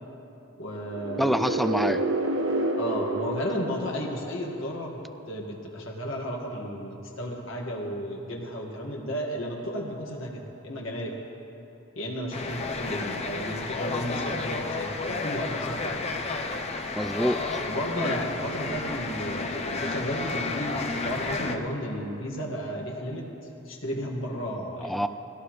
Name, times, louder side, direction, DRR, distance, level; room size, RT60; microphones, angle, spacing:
voice 1, 0.6-1.4 2.8-5.0 5.3-11.1 12.0-15.9 17.7-23.2 23.7-25.1, equal, 75° left, -2 dB, 1.8 m, -33 dB
sound 1, 0.9-4.7, right 2 dB, 80° right, 1.1 m, -29 dB
voice 2, 1.2-2.0 17.0-17.6 24.8-25.1, equal, ahead, 10 dB, 0.4 m, -26 dB
sound 2, 12.3-21.6, left 3 dB, 35° left, 0.7 m, -31 dB
18.5 x 17.0 x 3.2 m, 2.9 s
head